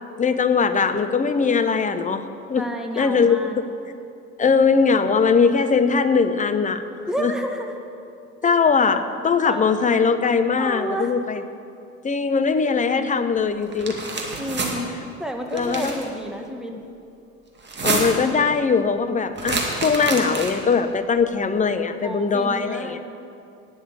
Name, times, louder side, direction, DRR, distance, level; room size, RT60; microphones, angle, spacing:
voice 1, 0.2-2.2 2.5-2.7 3.0-3.7 4.4-6.8 7.2-7.3 8.4-11.4 12.0-14.0 15.5-15.9 17.8-23.0, left 5 dB, 20° left, 9 dB, 0.8 m, -20 dB
voice 2, 2.5-3.6 7.1-7.7 8.4-8.5 9.4-9.7 10.6-11.1 14.3-14.9 15.2-16.7 22.0-23.0, right 1 dB, ahead, 3 dB, 1.5 m, -30 dB
sound 1, 13.7-14.7 15.5-16.0 17.6-18.3 19.4-20.7, right 3 dB, 30° right, 2.1 m, -27 dB
9.8 x 7.1 x 9.0 m, 2.6 s
hypercardioid pair, 65°, 38 cm